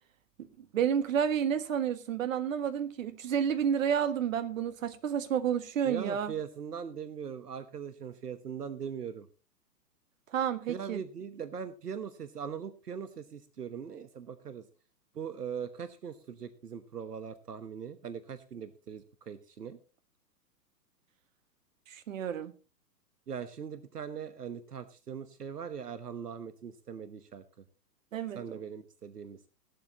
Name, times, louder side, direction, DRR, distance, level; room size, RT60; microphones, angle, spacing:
voice 1, 0.6-6.3 10.3-11.0 21.9-22.5 28.1-28.6, right 8 dB, 50° right, 1.5 m, -30 dB
voice 2, 5.8-9.3 10.7-14.7 15.1-19.8 23.3-27.4 28.3-29.4, right 7 dB, 70° right, 1.2 m, -40 dB
17.0 x 12.0 x 3.0 m
figure-of-eight pair, 115°, 49 cm